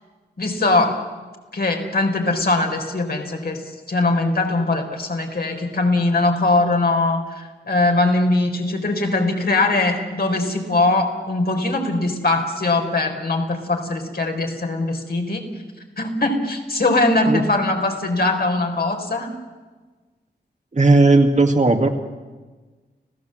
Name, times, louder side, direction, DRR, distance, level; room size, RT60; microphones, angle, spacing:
voice 1, 0.4-1.0 1.5-3.6 3.9-15.5 16.0-19.3, left 2 dB, 60° left, 3 dB, 4.1 m, -21 dB
voice 2, 20.7-21.9, right 2 dB, 40° right, 4 dB, 2.3 m, -15 dB
30.0 x 16.0 x 7.8 m, 1.3 s
wide cardioid pair, 70°, 18 cm